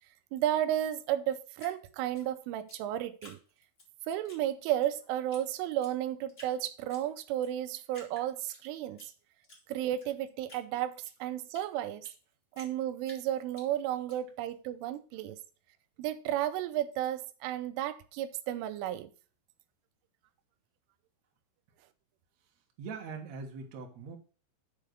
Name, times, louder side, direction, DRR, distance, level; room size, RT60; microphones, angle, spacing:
voice 1, 0.3-3.4 4.1-9.0 9.7-12.1 12.6-15.4 16.0-19.1, right 12 dB, 90° right, 3.2 m, -33 dB
Drip, 1.6-3.9 4.2-4.9 5.3-5.4 5.7-6.5 6.9-7.5 7.9-9.1 9.4-12.2 12.5-14.2, left 1 dB, 20° left, 1.5 m, -53 dB
voice 2, 22.8-24.2, right 5 dB, 60° right, 1.9 m, -41 dB
6.6 x 5.3 x 6.4 m
omnidirectional pair, 5.6 m